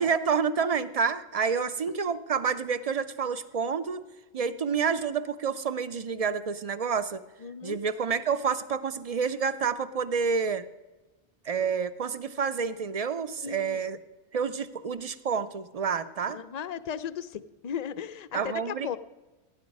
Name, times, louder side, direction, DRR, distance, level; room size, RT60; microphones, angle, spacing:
voice 1, 0.0-4.0 4.3-7.2 7.6-10.7 11.4-14.0 14.3-16.4 18.3-19.0, right 6 dB, 50° right, 14 dB, 0.4 m, -29 dB
voice 2, 7.4-7.8 13.4-13.8 16.3-19.0, left 8 dB, 55° left, 15 dB, 0.4 m, -36 dB
16.5 x 9.7 x 5.3 m, 1.1 s
omnidirectional pair, 1.2 m